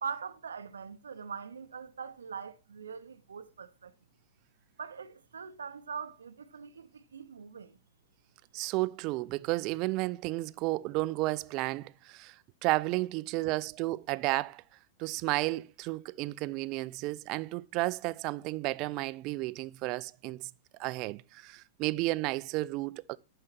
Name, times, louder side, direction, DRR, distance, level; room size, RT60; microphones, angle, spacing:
voice 1, 0.0-3.9 4.8-7.8, right 6 dB, 75° right, 0.7 m, -42 dB
voice 2, 8.5-12.3 12.6-14.6 15.0-20.5 20.8-23.2, right 20 dB, 40° right, 0.5 m, -32 dB
11.0 x 5.6 x 5.9 m
figure-of-eight pair, 100°, 0 cm